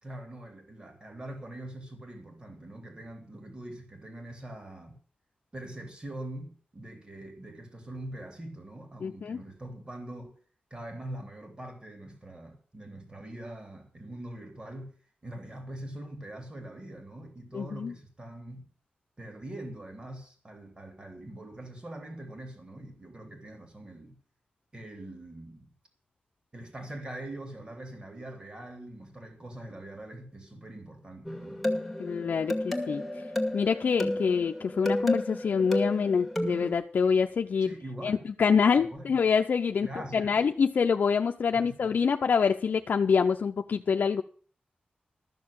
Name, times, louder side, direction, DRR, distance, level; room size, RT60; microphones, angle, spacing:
voice 1, 0.0-5.0 5.5-10.4 10.7-14.9 15.2-18.7 19.2-24.2 24.7-25.7 26.5-31.7 37.6-38.3 38.8-39.2 39.8-40.4 41.5-41.9, right 1 dB, 30° right, 3.3 m, -43 dB
voice 2, 9.0-9.4 17.5-17.9 32.0-33.2 33.5-37.7 38.0-44.2, left 6 dB, 75° left, 0.7 m, -26 dB
sound 1, 31.2-36.7, left 1 dB, ahead, 2.2 m, -32 dB
13.5 x 6.7 x 8.5 m
wide cardioid pair, 110°, 3 cm